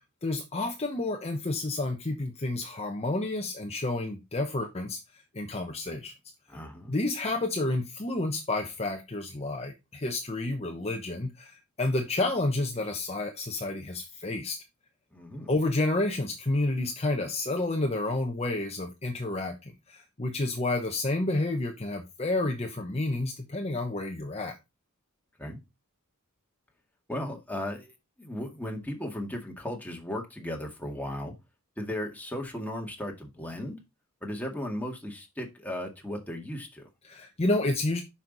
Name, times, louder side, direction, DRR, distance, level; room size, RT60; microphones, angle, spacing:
voice 1, 0.2-5.0 5.3-6.1 6.9-14.6 15.5-24.6 37.0-38.0, left 2 dB, 30° left, 3 dB, 1.0 m, -30 dB
voice 2, 6.5-7.0 15.1-15.5 25.4-25.6 27.1-27.9 28.2-31.3 31.8-33.8 34.2-36.9, left 1 dB, 5° left, 1 dB, 2.0 m, -36 dB
9.2 x 5.8 x 4.0 m, 0.24 s
head